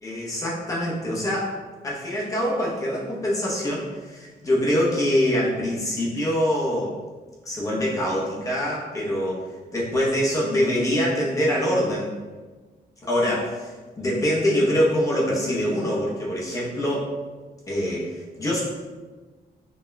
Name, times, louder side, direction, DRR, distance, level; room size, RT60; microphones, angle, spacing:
voice 1, 0.0-1.5 1.8-6.9 7.5-9.4 9.7-12.1 13.0-17.1 17.7-18.6, equal, 20° left, -5 dB, 0.8 m, -24 dB
5.3 x 2.8 x 2.3 m, 1.3 s
wide cardioid pair, 175°, 17 cm